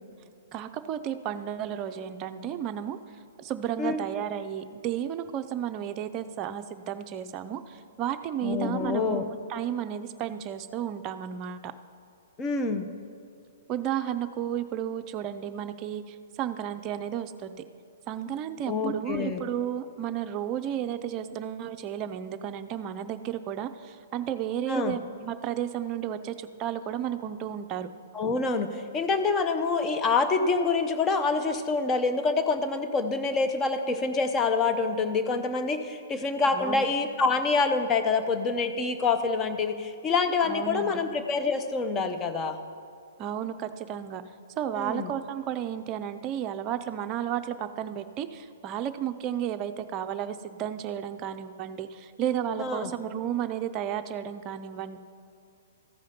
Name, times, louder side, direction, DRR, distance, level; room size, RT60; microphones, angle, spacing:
voice 1, 0.5-3.0 3.4-11.7 13.7-17.5 18.1-27.9 36.5-36.8 40.4-41.0 43.2-44.2 44.6-55.0, right 10 dB, 30° right, 9 dB, 0.5 m, -33 dB
voice 2, 8.4-9.2 12.4-12.9 18.7-19.4 24.7-25.0 28.1-42.6 44.7-45.1 52.6-52.9, left 4 dB, 20° left, 7 dB, 0.7 m, -26 dB
14.0 x 5.0 x 5.7 m, 2.5 s
figure-of-eight pair, 115°, 0 cm